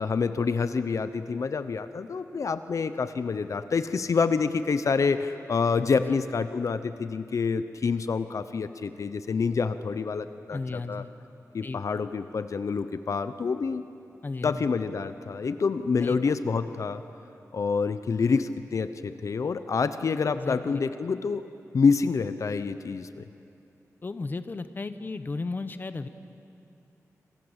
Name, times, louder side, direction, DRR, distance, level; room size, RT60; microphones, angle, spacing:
voice 1, 0.0-11.0 11.5-13.8 14.4-17.0 17.5-21.4 21.7-23.2, left 5 dB, 65° left, 11 dB, 0.9 m, -27 dB
voice 2, 10.5-11.1 11.6-11.8 14.2-14.6 16.0-16.3 20.3-20.8 24.0-26.1, left 3 dB, 35° left, 11 dB, 1.0 m, -34 dB
27.0 x 26.5 x 8.2 m, 2.7 s
wide cardioid pair, 155°, 6 cm